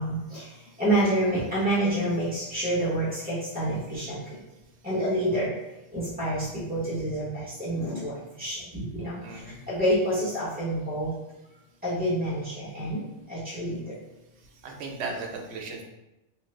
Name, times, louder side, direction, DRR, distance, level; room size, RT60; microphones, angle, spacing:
voice 1, 0.0-4.4 4.8-5.6 5.9-11.1 11.8-14.0, right 1 dB, 10° right, -10 dB, 0.6 m, -28 dB
voice 2, 9.2-9.6 14.6-15.8, right 3 dB, 65° right, 1 dB, 0.8 m, -36 dB
2.9 x 2.4 x 3.2 m, 0.99 s
omnidirectional pair, 1.3 m